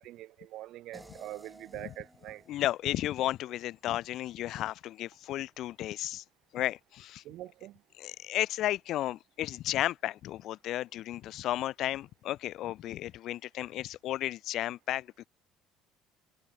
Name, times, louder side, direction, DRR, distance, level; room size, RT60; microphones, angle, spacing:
voice 1, 0.0-2.4 7.2-7.8, right 15 dB, 60° right, 0.7 m, -44 dB
sound 1, 0.9-4.0, right 1 dB, 5° right, 2.9 m, -56 dB
voice 2, 2.5-6.2 6.5-7.2 8.0-15.3, left 14 dB, 55° left, 0.6 m, -33 dB
cardioid pair, 135°, 0 cm